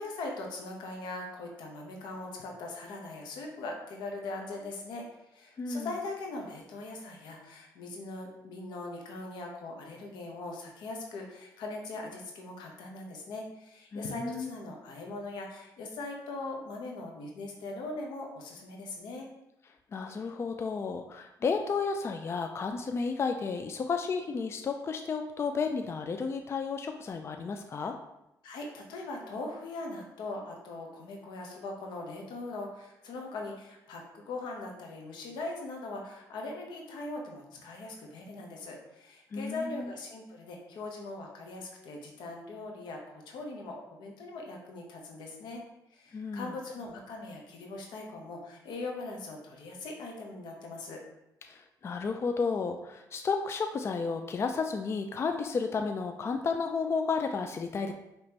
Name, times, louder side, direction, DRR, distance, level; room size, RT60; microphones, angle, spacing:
voice 1, 0.0-19.3 28.4-45.6 45.9-51.0, left 2 dB, 85° left, 1 dB, 0.9 m, -40 dB
voice 2, 5.6-5.9 13.9-14.5 19.9-28.0 39.3-39.9 46.1-46.5 51.5-57.9, left 5 dB, 35° left, 6 dB, 0.3 m, -32 dB
5.2 x 2.9 x 2.9 m, 0.88 s
cardioid pair, 95°, 7 cm